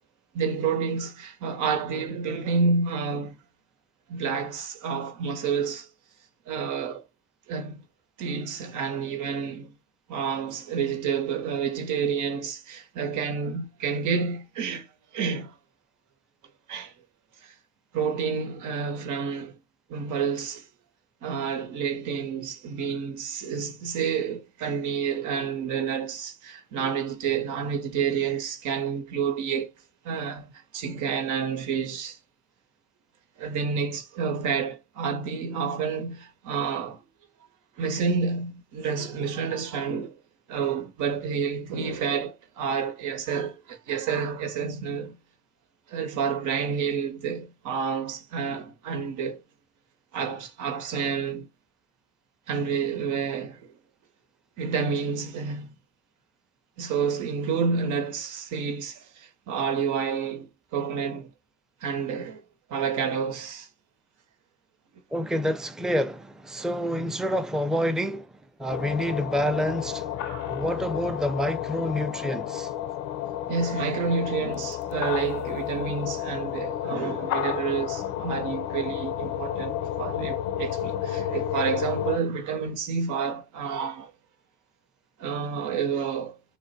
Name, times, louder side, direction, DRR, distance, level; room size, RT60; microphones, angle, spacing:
voice 1, 0.3-3.4 4.1-5.9 6.5-7.0 7.5-7.8 8.2-9.7 10.1-14.9 15.1-15.5 16.7-16.9 17.4-17.5 17.9-19.5 19.9-20.7 21.2-29.7 30.0-30.5 30.7-32.2 33.4-37.0 37.8-40.2 40.5-45.2 45.9-49.4 50.1-51.5 52.5-53.7 54.6-55.7 56.8-61.3 61.8-62.4 62.7-63.7 70.3-70.5 73.5-84.1 85.2-86.4, right 6 dB, 90° right, 0.9 m, -29 dB
voice 2, 65.1-68.3 68.6-70.1 70.5-72.7 76.9-77.0, equal, ahead, 0.4 m, -28 dB
sound 1, 68.7-82.2, left 11 dB, 90° left, 0.5 m, -31 dB
3.3 x 2.1 x 4.0 m
cardioid pair, 90°, 30 cm